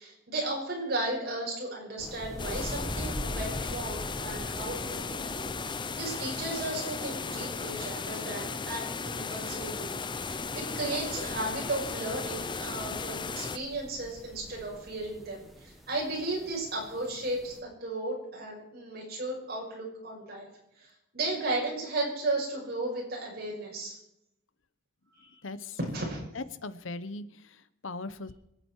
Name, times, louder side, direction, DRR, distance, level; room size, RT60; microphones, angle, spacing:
voice 1, 0.0-9.9 10.2-20.5 20.8-20.9 21.1-24.0 25.9-26.2, right 2 dB, 55° right, -2 dB, 6.1 m, -35 dB
sound 1, 2.0-17.6, equal, ahead, 2.0 m, -44 dB
sound 2, 2.4-13.6, left 4 dB, 25° left, 0.6 m, -36 dB
voice 2, 25.4-25.8 26.3-28.3, left 3 dB, 85° left, 15 dB, 1.0 m, -39 dB
26.5 x 9.0 x 4.7 m, 0.82 s
head